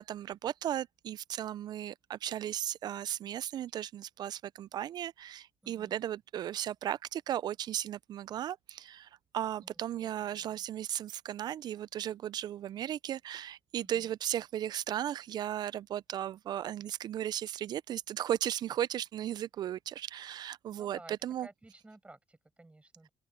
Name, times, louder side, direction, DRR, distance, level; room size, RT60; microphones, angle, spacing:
voice 1, 0.0-21.5, right 11 dB, 65° right, 0.4 m, -36 dB
voice 2, 5.6-6.0 9.6-10.6 13.8-14.1 20.7-21.2 21.4-23.1, right 2 dB, 15° right, 6.0 m, -55 dB
open air
supercardioid pair, 75°, 8 cm